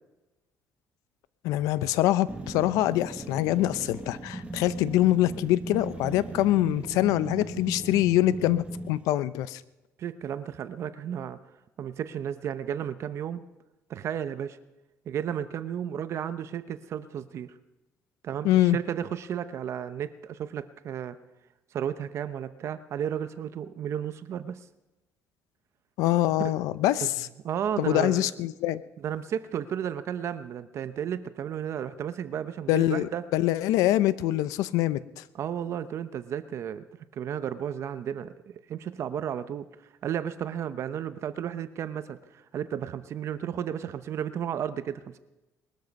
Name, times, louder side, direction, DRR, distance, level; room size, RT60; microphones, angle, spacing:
voice 1, 1.4-9.6 18.4-18.8 26.0-27.3 27.8-28.8 32.7-35.2, left 14 dB, 90° left, 16 dB, 0.7 m, -24 dB
sound 1, 2.3-9.0, right 3 dB, 20° right, 1.3 m, -38 dB
voice 2, 10.0-11.4 11.8-13.4 13.9-14.6 15.1-17.5 18.2-21.2 21.7-24.6 26.4-26.5 27.0-27.1 27.4-28.3 29.0-33.2 35.3-36.8 37.2-39.7 40.0-45.2, right 9 dB, 55° right, 12 dB, 0.8 m, -33 dB
20.5 x 13.0 x 5.3 m, 1.0 s
cardioid pair, 115°, 6 cm